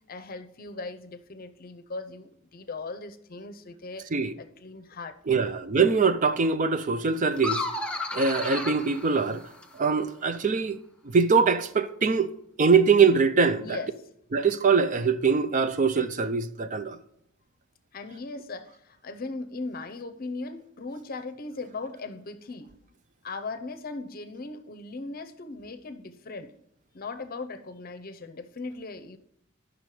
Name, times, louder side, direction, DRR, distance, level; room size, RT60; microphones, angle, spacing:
voice 1, 0.1-4.0 4.4-5.2 13.6-13.9 17.9-22.7 23.2-26.5 26.9-29.2, left 3 dB, 50° left, 0.6 m, -38 dB
voice 2, 5.3-7.6 8.1-9.4 9.8-10.8 11.1-12.3 12.6-13.6 14.3-17.0, right 5 dB, 40° right, 0.5 m, -23 dB
sound 1, 7.4-9.9, left 2 dB, 5° left, 0.7 m, -33 dB
9.3 x 6.1 x 4.8 m
head